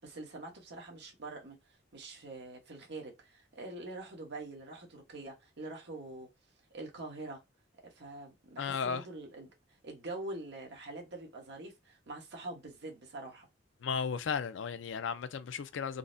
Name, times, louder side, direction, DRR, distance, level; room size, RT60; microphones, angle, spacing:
voice 1, 0.0-1.6 1.9-6.3 6.7-7.4 7.8-9.5 9.8-13.5, right 2 dB, 65° right, 1.1 m, -44 dB
voice 2, 8.6-9.0 13.8-16.0, left 6 dB, 70° left, 0.4 m, -35 dB
3.8 x 2.1 x 2.5 m
head